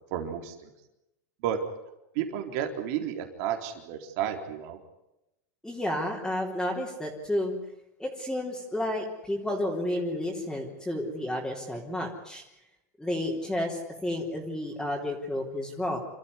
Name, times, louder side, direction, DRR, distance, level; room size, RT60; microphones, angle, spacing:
voice 1, 0.1-0.7 1.4-1.6 2.1-4.8, right 9 dB, 60° right, 4 dB, 4.0 m, -32 dB
voice 2, 5.6-7.6 8.0-12.4 13.0-16.0, left 1 dB, 5° left, -4 dB, 3.8 m, -31 dB
28.5 x 14.0 x 9.8 m, 0.90 s
supercardioid pair, 135°, 9 cm